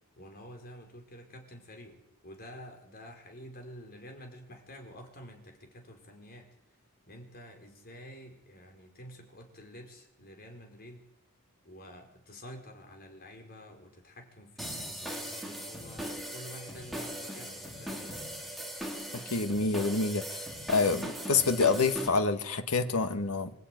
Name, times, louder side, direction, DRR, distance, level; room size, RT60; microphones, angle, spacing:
voice 1, 0.2-6.8 7.1-11.0 11.6-18.2, equal, 45° left, 3 dB, 5.1 m, -49 dB
sound 1, 14.6-22.1, equal, ahead, 3.7 m, -39 dB
voice 2, 19.1-20.2 20.7-23.5, left 4 dB, 90° left, 8 dB, 1.7 m, -27 dB
26.5 x 15.0 x 9.4 m, 0.87 s
head